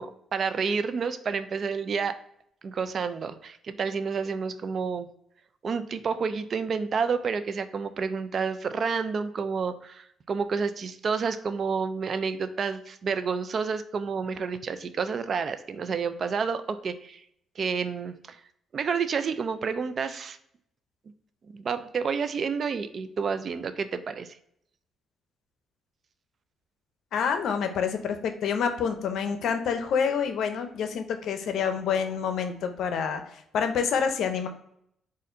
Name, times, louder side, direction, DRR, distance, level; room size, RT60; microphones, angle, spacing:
voice 1, 0.0-2.1 2.6-5.1 5.6-17.2 17.6-18.4 18.7-20.4 21.5-24.3, right 5 dB, 50° right, 11 dB, 0.3 m, -29 dB
voice 2, 27.1-34.5, left 6 dB, 75° left, 7 dB, 0.5 m, -27 dB
4.2 x 2.5 x 3.8 m, 0.71 s
cardioid pair, 90°, 0 cm